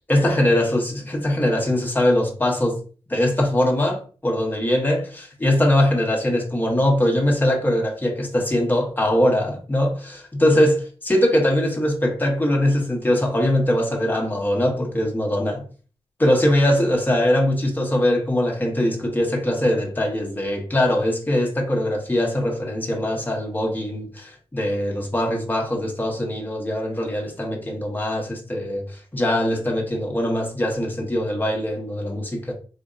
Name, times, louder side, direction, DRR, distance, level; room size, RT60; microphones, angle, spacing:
voice 1, 0.1-2.8 3.1-15.6 16.2-32.5, left 1 dB, 20° left, 1.1 m, -21 dB
4.3 x 2.6 x 2.5 m
cardioid pair, 70°, 11 cm